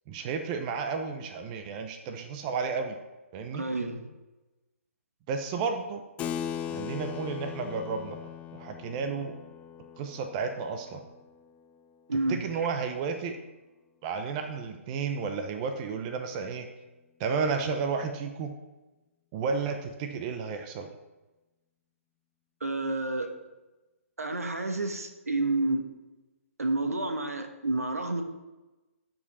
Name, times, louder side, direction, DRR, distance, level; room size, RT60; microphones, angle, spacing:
voice 1, 0.1-3.0 3.3-3.6 5.3-6.0 6.7-8.2 8.5-9.4 10.0-11.0 12.3-13.4 14.0-16.7 17.2-18.5 19.3-20.9, right 5 dB, 30° right, 6 dB, 0.8 m, -32 dB
voice 2, 3.5-4.1 12.1-12.4 22.6-23.3 24.2-25.9 26.6-28.2, right 2 dB, 80° right, 7 dB, 1.2 m, -29 dB
Keyboard (musical), 6.2-12.2, left 9 dB, 15° left, 0.4 m, -39 dB
12.0 x 5.2 x 4.3 m, 1.1 s
figure-of-eight pair, 135°, 8 cm